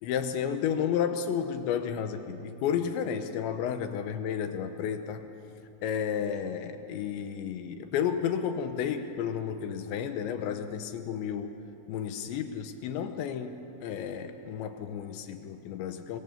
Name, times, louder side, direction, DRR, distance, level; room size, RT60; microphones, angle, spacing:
voice 1, 0.0-5.2 5.8-11.5 11.9-16.2, left 8 dB, 80° left, 8 dB, 3.2 m, -32 dB
25.5 x 24.0 x 7.3 m, 2.7 s
omnidirectional pair, 5.3 m